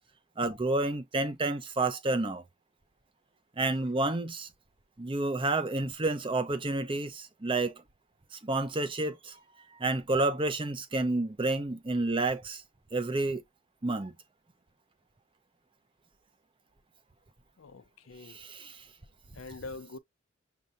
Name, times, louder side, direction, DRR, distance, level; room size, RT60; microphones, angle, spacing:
voice 1, 0.4-2.4 3.6-4.5 5.0-7.7 8.3-9.4 9.7-12.6 12.9-13.4 13.8-14.1 18.2-18.8, right 2 dB, 25° right, 0.6 m, -30 dB
voice 2, 17.6-18.4 19.3-20.0, left 3 dB, 80° left, 0.5 m, -44 dB
6.4 x 2.8 x 2.5 m
head